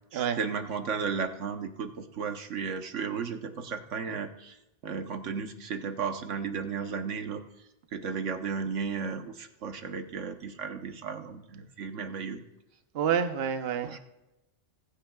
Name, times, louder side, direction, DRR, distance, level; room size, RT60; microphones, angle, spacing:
voice 1, 0.1-4.6 4.8-7.4 7.9-12.4 13.8-14.0, right 5 dB, 75° right, 6 dB, 1.3 m, -34 dB
voice 2, 12.9-14.0, right 8 dB, 60° right, 7 dB, 1.0 m, -28 dB
21.5 x 8.8 x 2.3 m, 0.94 s
omnidirectional pair, 1.3 m